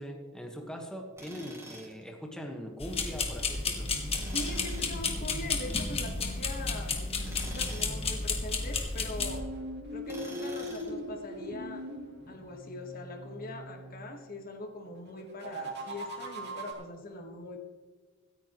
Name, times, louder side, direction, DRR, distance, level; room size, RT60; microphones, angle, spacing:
voice 1, 0.0-3.9, equal, 5° left, 1 dB, 1.4 m, -41 dB
Tools, 1.2-2.0 4.1-5.0 7.1-8.0 10.0-11.0, right 1 dB, 15° right, 3.6 m, -47 dB
sound 1, 2.8-9.4, left 4 dB, 30° left, 1.6 m, -32 dB
sound 2, 3.8-8.1 9.1-14.0 15.2-16.7, right 1 dB, 55° right, 2.8 m, -42 dB
voice 2, 4.3-7.0 7.4-9.4 9.9-11.9 12.3-17.6, left 2 dB, 45° left, 4 dB, 1.6 m, -42 dB
25.0 x 9.3 x 3.1 m, 1.5 s
head